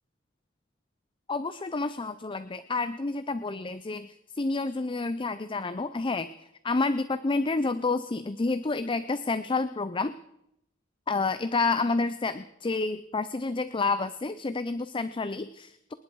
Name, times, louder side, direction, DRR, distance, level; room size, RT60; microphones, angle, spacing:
voice 1, 1.3-6.3 6.6-10.1 11.1-15.9, left 3 dB, 25° left, 12 dB, 0.5 m, -29 dB
27.5 x 10.5 x 4.7 m, 0.81 s
head